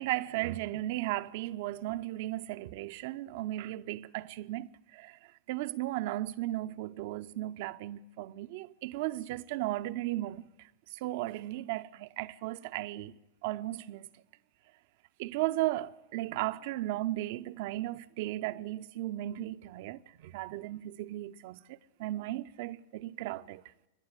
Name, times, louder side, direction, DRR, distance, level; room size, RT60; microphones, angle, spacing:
voice 1, 0.0-13.1 13.4-14.1 15.2-23.6, right 16 dB, 50° right, 0.8 m, -36 dB
28.0 x 11.5 x 9.4 m
figure-of-eight pair, 90°, 0 cm